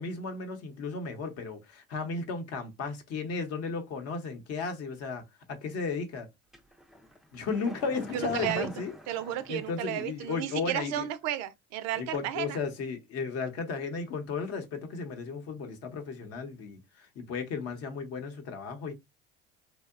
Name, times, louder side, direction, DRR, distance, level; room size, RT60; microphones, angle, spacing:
voice 1, 0.0-5.2 5.6-6.3 7.3-8.9 9.5-11.1 11.9-18.9, left 4 dB, 55° left, 0.8 m, -34 dB
sound 1, 6.5-10.2 10.5-10.6, equal, ahead, 0.3 m, -45 dB
voice 2, 8.1-8.7 9.1-12.6, right 12 dB, 60° right, 0.4 m, -33 dB
2.7 x 2.0 x 2.4 m
supercardioid pair, 90°, 30 cm